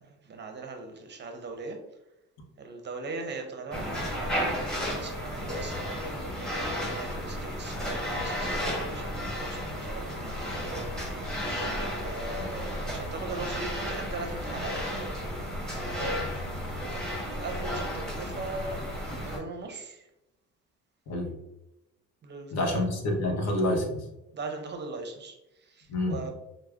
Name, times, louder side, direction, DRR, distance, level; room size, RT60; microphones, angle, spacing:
voice 1, 0.0-1.8 2.6-4.6 4.9-6.2 6.9-11.7 12.0-14.8 15.8-16.4 16.9-20.1 22.2-22.9 24.3-26.3, right 3 dB, 35° right, 4 dB, 0.6 m, -40 dB
sound 1, 3.7-19.4, equal, ahead, 1.0 m, -33 dB
voice 2, 22.5-24.1 25.9-26.2, left 1 dB, 60° left, 2 dB, 0.9 m, -28 dB
4.7 x 2.0 x 2.3 m, 0.92 s
cardioid pair, 85°, 30 cm